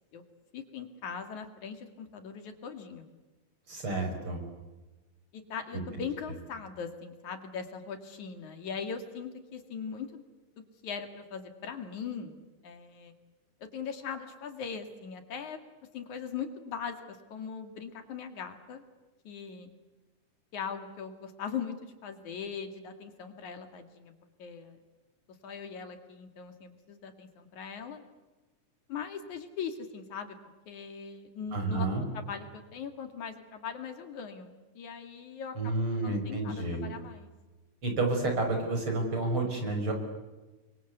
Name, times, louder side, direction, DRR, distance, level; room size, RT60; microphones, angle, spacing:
voice 1, 0.5-3.1 5.3-10.3 10.8-12.4 12.6-13.1 13.7-15.6 15.9-18.8 19.3-19.7 20.5-24.1 24.4-24.8 25.4-28.0 28.9-30.4 30.7-37.3, left 6 dB, 70° left, 7 dB, 3.7 m, -40 dB
voice 2, 3.7-4.4 31.5-32.0 35.6-36.9 37.8-39.9, right 2 dB, 40° right, 3 dB, 6.6 m, -30 dB
29.5 x 24.0 x 8.2 m, 1.2 s
omnidirectional pair, 3.6 m